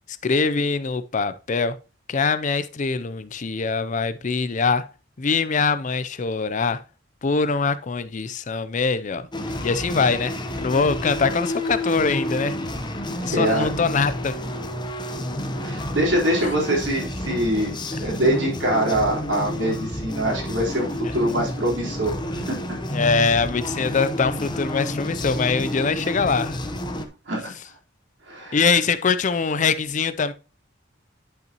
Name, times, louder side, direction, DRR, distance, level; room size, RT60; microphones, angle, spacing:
voice 1, 0.2-1.8 2.1-4.9 5.2-6.8 7.2-9.3 9.6-12.6 13.2-14.4 16.4-16.5 22.9-26.6 28.5-30.3, left 4 dB, 40° left, 0.5 m, -23 dB
sound 1, 9.3-27.1, left 1 dB, 25° left, 0.9 m, -30 dB
voice 2, 13.2-13.7 15.6-17.7 18.0-22.6 27.3-27.5 28.3-28.6, right 1 dB, 65° right, 3.9 m, -24 dB
10.5 x 5.8 x 2.9 m
head